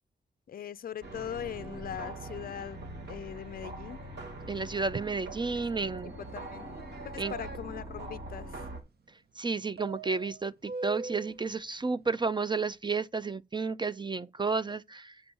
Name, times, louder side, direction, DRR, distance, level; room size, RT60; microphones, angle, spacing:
voice 1, 0.5-2.8 3.1-4.0 6.2-6.7 7.0-8.6, left 9 dB, 55° left, 0.4 m, -40 dB
sound 1, 1.0-8.8, right 1 dB, 85° right, 2.7 m, -42 dB
voice 2, 4.5-6.1 7.2-7.3 9.4-15.2, right 4 dB, 25° right, 0.4 m, -32 dB
sound 2, 6.3-7.6 9.8-11.4, right 3 dB, 65° right, 1.0 m, -41 dB
8.3 x 5.2 x 5.3 m
wide cardioid pair, 120°, 18 cm